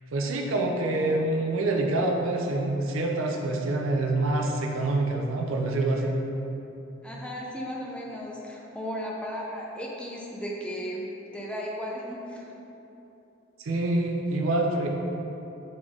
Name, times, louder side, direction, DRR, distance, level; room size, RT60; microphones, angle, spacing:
voice 1, 0.1-6.1 13.6-14.9, right 2 dB, 80° right, 2 dB, 0.5 m, -26 dB
voice 2, 7.0-11.0 11.3-12.5, equal, 5° left, -3 dB, 0.4 m, -35 dB
3.9 x 3.3 x 3.6 m, 3.0 s
head